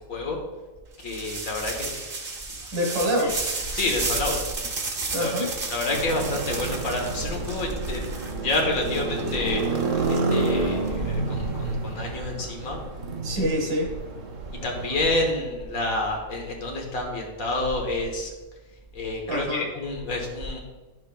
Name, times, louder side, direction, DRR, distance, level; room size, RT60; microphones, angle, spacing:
voice 1, 1.0-2.1 3.2-3.3 3.7-4.4 5.2-5.5 5.7-8.0 8.4-9.6 10.1-12.8 13.4-13.5 14.6-18.3 18.9-20.6, left 2 dB, 75° left, 1 dB, 1.7 m, -28 dB
sound 1, 1.0-10.9, right 3 dB, 45° right, 1.0 m, -33 dB
voice 2, 2.7-3.5 5.1-5.5 13.2-13.9 19.3-19.7, equal, 90° right, -1 dB, 2.1 m, -26 dB
sound 2, 5.9-15.3, right 3 dB, 65° right, 1.3 m, -29 dB
11.0 x 6.4 x 2.3 m, 1.2 s
omnidirectional pair, 1.5 m